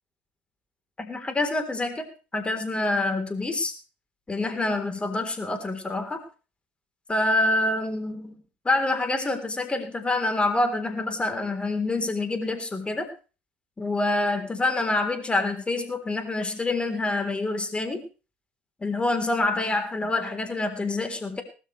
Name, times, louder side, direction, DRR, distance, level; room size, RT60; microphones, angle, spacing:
voice 1, 1.0-2.1 2.3-3.7 4.3-6.2 7.1-8.4 8.7-13.1 13.8-18.0 18.8-21.4, left 2 dB, 20° left, 6 dB, 3.6 m, -26 dB
19.0 x 13.0 x 3.3 m, 0.34 s
hypercardioid pair, 65°, 6 cm